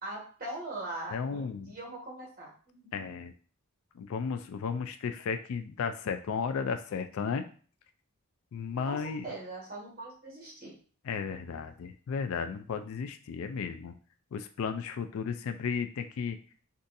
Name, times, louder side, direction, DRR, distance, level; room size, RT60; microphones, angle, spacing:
voice 1, 0.0-2.9 8.8-10.8, right 2 dB, 40° right, -4 dB, 1.4 m, -41 dB
voice 2, 1.1-1.7 2.9-3.3 4.0-7.4 8.5-9.3 11.0-13.9 14.3-16.4, left 6 dB, 70° left, 8 dB, 0.3 m, -34 dB
3.9 x 2.4 x 2.6 m, 0.42 s
head